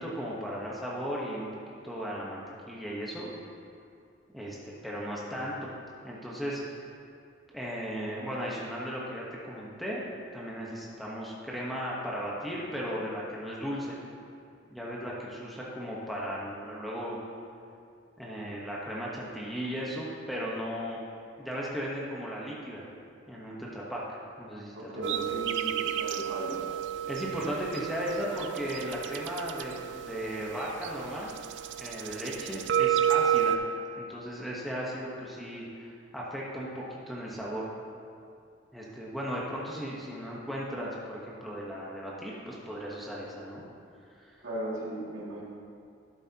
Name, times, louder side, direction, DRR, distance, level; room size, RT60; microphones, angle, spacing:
voice 1, 0.0-1.5 1.8-3.3 4.3-5.8 6.0-6.6 7.5-14.0 14.7-17.2 18.2-21.0 21.4-22.9 23.3-24.0 24.4-25.3 27.1-31.4 31.8-33.6 34.0-37.7 38.7-43.6 44.2-44.4, equal, ahead, -5 dB, 1.0 m, -36 dB
voice 2, 24.7-26.7 44.4-45.4, right 1 dB, 85° right, -8 dB, 2.3 m, -37 dB
sound 1, 25.0-33.6, right 10 dB, 65° right, 0.4 m, -31 dB
12.0 x 8.0 x 2.9 m, 2.4 s
head